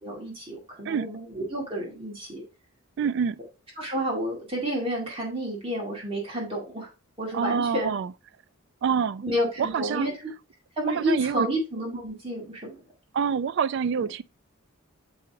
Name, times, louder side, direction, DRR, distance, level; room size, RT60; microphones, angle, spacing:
voice 1, 0.0-2.4 3.8-6.9 7.2-7.9 9.2-10.1 10.8-12.8 14.0-14.1, equal, 25° right, 2.1 m, -30 dB
voice 2, 3.0-3.4 7.3-8.1 8.8-9.2 9.6-10.1 10.9-11.5 13.1-14.2, right 6 dB, 55° right, 0.3 m, -26 dB
7.0 x 4.9 x 3.5 m
head